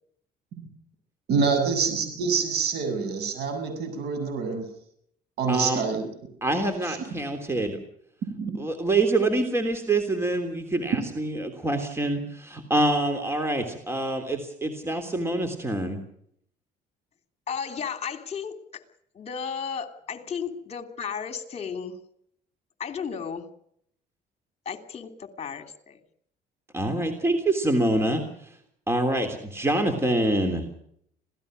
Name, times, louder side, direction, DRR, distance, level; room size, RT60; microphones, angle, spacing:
voice 1, 1.3-4.7 5.4-6.1 6.9-7.0 8.4-8.5, right 5 dB, 75° right, 8 dB, 7.9 m, -26 dB
voice 2, 5.5-5.8 6.4-7.8 8.6-16.0 26.7-28.2 28.9-30.6, right 2 dB, 15° right, 7 dB, 3.4 m, -25 dB
voice 3, 17.5-18.8 19.1-22.0 22.8-23.5 24.6-26.0, left 6 dB, 40° left, 8 dB, 3.1 m, -34 dB
26.5 x 17.5 x 6.6 m, 0.69 s
cardioid pair, 110°, 17 cm